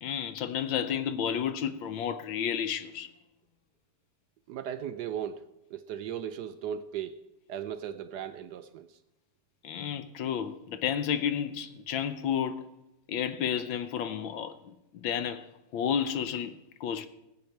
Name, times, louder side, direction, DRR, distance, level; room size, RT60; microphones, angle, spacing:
voice 1, 0.0-3.1 9.6-12.7 13.1-15.5 15.7-17.1, left 8 dB, 70° left, 1.4 m, -31 dB
voice 2, 4.5-7.2 7.5-9.0, right 9 dB, 80° right, 0.9 m, -37 dB
20.5 x 8.4 x 4.5 m
omnidirectional pair, 2.3 m